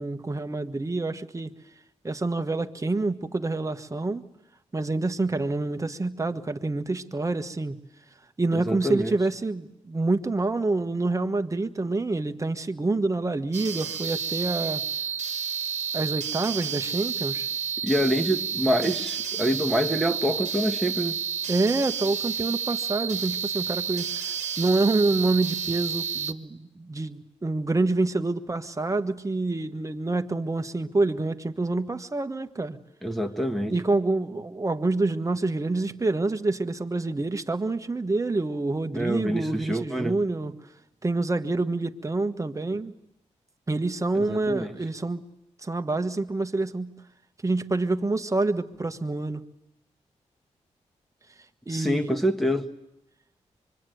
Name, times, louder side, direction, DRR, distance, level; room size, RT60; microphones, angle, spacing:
voice 1, 0.0-1.5 2.0-4.2 4.7-7.8 8.4-14.8 15.9-17.5 21.5-32.8 33.7-40.5 41.0-42.9 43.7-45.2 45.6-46.9 47.4-49.4 51.7-52.2, right 2 dB, 25° right, 7 dB, 1.4 m, -27 dB
voice 2, 8.5-9.1 17.8-21.2 33.0-33.7 38.9-40.1 44.1-44.7 51.7-52.7, equal, ahead, 2 dB, 1.8 m, -26 dB
sound 1, 13.5-26.3, right 7 dB, 70° right, 1.5 m, -30 dB
25.0 x 23.0 x 9.3 m, 0.84 s
cardioid pair, 65°, 13 cm